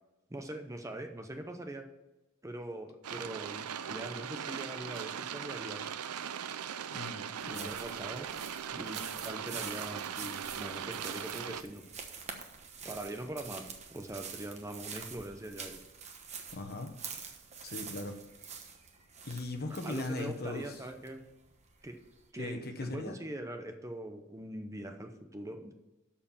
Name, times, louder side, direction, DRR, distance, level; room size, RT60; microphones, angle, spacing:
voice 1, 0.3-1.9 2.4-5.8 7.5-8.3 8.7-11.9 12.8-15.8 19.7-21.2 21.8-22.0 22.3-25.7, right 1 dB, 15° right, 5 dB, 0.7 m, -42 dB
sound 1, 3.0-11.6, right 8 dB, 85° right, 0.5 m, -39 dB
voice 2, 6.9-7.7 16.5-16.9 17.6-18.2 19.2-20.8 22.4-23.2, left 2 dB, 45° left, 6 dB, 1.1 m, -39 dB
sound 2, 7.4-22.3, right 6 dB, 30° right, 1.1 m, -47 dB
13.0 x 4.5 x 7.3 m, 1.0 s
head